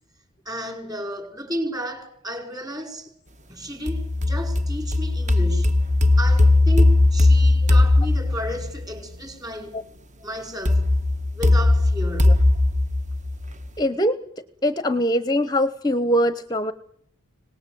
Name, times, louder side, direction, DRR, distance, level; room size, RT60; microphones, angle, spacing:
voice 1, 0.4-3.1 3.5-5.8 6.2-9.8 10.2-10.9 11.3-12.4, equal, 15° right, 4.9 m, -33 dB
sound 1, 3.9-8.8 10.6-13.7, left 2 dB, 35° right, 1.5 m, -18 dB
voice 2, 13.8-14.2 14.6-16.7, equal, 20° left, 0.9 m, -22 dB
26.0 x 19.0 x 7.7 m
head